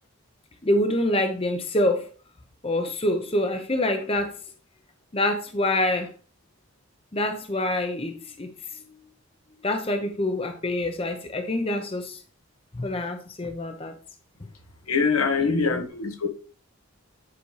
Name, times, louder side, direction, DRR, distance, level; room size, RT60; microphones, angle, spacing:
voice 1, 0.6-2.1 2.6-4.3 5.1-6.1 7.1-8.5 9.6-12.2 12.7-13.9 15.4-15.8, left 1 dB, 25° left, 0.7 m, -26 dB
voice 2, 14.9-16.3, left 5 dB, 85° left, 1.4 m, -23 dB
9.6 x 5.1 x 3.2 m
head